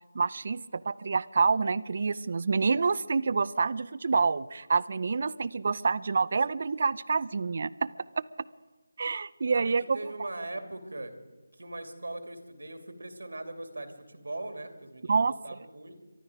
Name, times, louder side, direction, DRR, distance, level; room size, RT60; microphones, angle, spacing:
voice 1, 0.1-7.9 8.2-8.3 9.0-10.0 15.1-15.3, right 4 dB, 45° right, 19 dB, 0.5 m, -27 dB
voice 2, 9.5-11.1 11.6-16.0, right 2 dB, 85° right, 7 dB, 2.6 m, -40 dB
23.5 x 12.5 x 5.0 m, 1.3 s
figure-of-eight pair, 170°, 0 cm